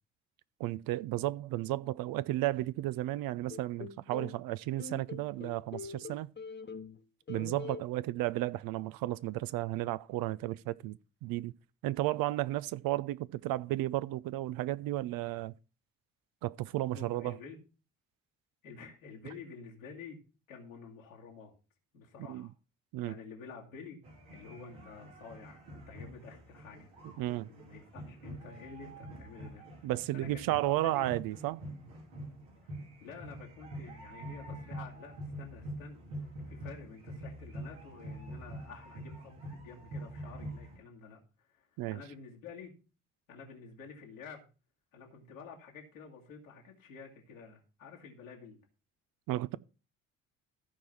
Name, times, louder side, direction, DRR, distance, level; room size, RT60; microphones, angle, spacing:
voice 1, 0.6-6.3 7.3-11.5 11.8-15.5 16.4-17.4 22.3-22.5 22.9-23.2 27.2-27.5 29.8-31.6 41.8-42.0 49.3-49.6, right 16 dB, 60° right, 0.6 m, -33 dB
sound 1, 3.5-4.4 4.8-7.0 7.3-7.8, left 5 dB, 30° left, 1.0 m, -44 dB
voice 2, 16.9-17.6 18.6-20.2 20.5-21.5 21.9-22.5 23.0-24.0 24.3-26.9 27.5-30.5 30.8-31.1 32.6-42.8 43.3-44.5 44.9-48.6, left 5 dB, 90° left, 2.0 m, -50 dB
sound 2, 24.0-40.8, right 1 dB, 80° right, 3.4 m, -45 dB
14.0 x 4.8 x 5.6 m
hypercardioid pair, 45°, 39 cm